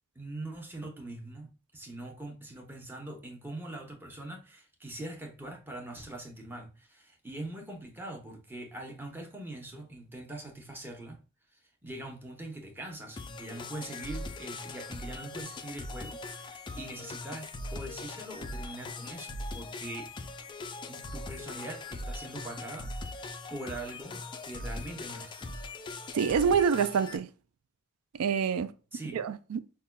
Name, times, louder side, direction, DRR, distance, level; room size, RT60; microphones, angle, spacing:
voice 1, 0.2-11.2 11.5-20.1 20.9-25.6 28.9-29.2, right 1 dB, 10° right, 0.8 m, -42 dB
sound 1, 13.2-27.2, left 2 dB, 20° left, 0.3 m, -40 dB
voice 2, 26.1-27.3 28.1-28.7 29.1-29.6, right 6 dB, 90° right, 0.4 m, -26 dB
5.5 x 2.2 x 2.2 m
head